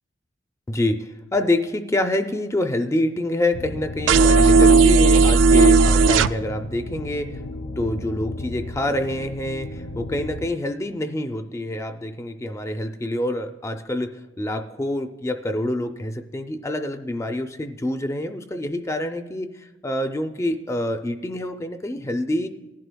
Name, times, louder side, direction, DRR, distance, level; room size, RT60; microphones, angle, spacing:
voice 1, 0.7-7.4 7.8-22.5, left 1 dB, 15° left, 7 dB, 0.4 m, -26 dB
sound 1, 3.5-10.5, left 2 dB, 75° left, 0.6 m, -34 dB
sound 2, 4.1-6.3, right 4 dB, 70° right, 0.3 m, -14 dB
18.0 x 11.0 x 2.2 m, 1.1 s
head